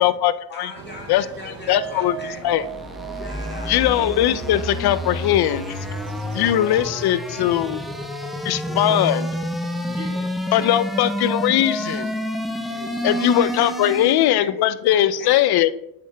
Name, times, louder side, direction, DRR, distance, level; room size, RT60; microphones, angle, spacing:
voice 1, 0.0-0.7 1.1-1.3 1.7-2.2 2.4-2.6 3.7-5.8 6.3-7.8 8.4-9.2 10.5-12.1 13.0-15.7, left 12 dB, 65° left, 15 dB, 0.5 m, -20 dB
voice 2, 0.5-2.7 3.1-3.7 13.0-15.5, left 2 dB, 25° left, 1 dB, 1.8 m, -40 dB
sound 1, 0.7-6.5, right 5 dB, 55° right, 0.9 m, -41 dB
sound 2, 1.7-8.9 9.2-9.3 9.7-9.8, right 10 dB, 40° right, 2.2 m, -40 dB
sound 3, 2.2-14.4, equal, ahead, 0.8 m, -29 dB
voice 3, 7.3-7.8 8.6-9.4 9.7-10.8 12.5-13.0, right 1 dB, 15° right, -1 dB, 1.7 m, -41 dB
7.8 x 6.6 x 2.2 m, 0.83 s
supercardioid pair, 60°, 42 cm